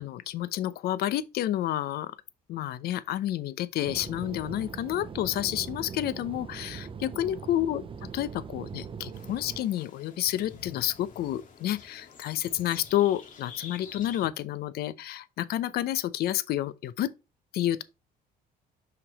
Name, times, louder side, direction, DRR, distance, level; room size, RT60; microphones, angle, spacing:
voice 1, 0.0-2.2 2.5-7.8 8.1-17.1 17.5-17.8, left 12 dB, 70° left, 0.6 m, -30 dB
sound 1, 3.9-9.7, right 6 dB, 30° right, 0.7 m, -41 dB
sound 2, 9.1-14.3, left 6 dB, 50° left, 1.8 m, -48 dB
5.9 x 5.1 x 4.0 m
cardioid pair, 110°, 17 cm